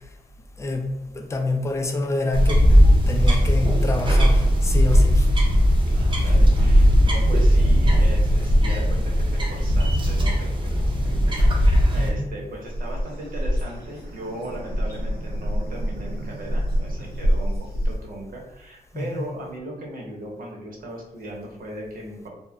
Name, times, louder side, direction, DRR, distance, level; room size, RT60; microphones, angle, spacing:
voice 1, 1.1-5.3 12.0-12.4 18.9-19.3, left 2 dB, 15° left, 3 dB, 0.4 m, -27 dB
sound 1, 2.3-12.1, equal, 30° right, 0.6 m, -18 dB
voice 2, 5.9-17.6 17.8-22.3, right 1 dB, 60° right, -1 dB, 0.8 m, -37 dB
sound 2, 12.4-18.3, right 2 dB, 90° right, 0.6 m, -43 dB
sound 3, 12.7-17.9, equal, 85° left, 1.0 m, -26 dB
2.2 x 2.1 x 3.6 m, 0.95 s
cardioid pair, 100°, 16 cm